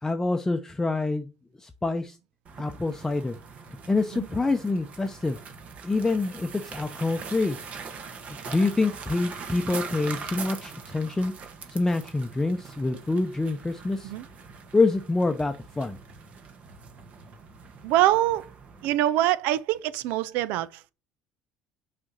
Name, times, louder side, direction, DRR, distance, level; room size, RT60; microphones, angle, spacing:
voice 1, 0.0-1.3 1.6-2.2 2.6-3.4 3.9-5.4 5.8-7.6 8.3-11.3 11.7-14.1 14.7-16.0, left 3 dB, 15° left, 0.8 m, -26 dB
sound 1, 2.5-19.0, right 5 dB, 45° right, 1.5 m, -42 dB
voice 2, 17.8-18.5 18.8-20.9, right 14 dB, 70° right, 0.5 m, -24 dB
6.2 x 4.3 x 6.2 m
hypercardioid pair, 75°, 3 cm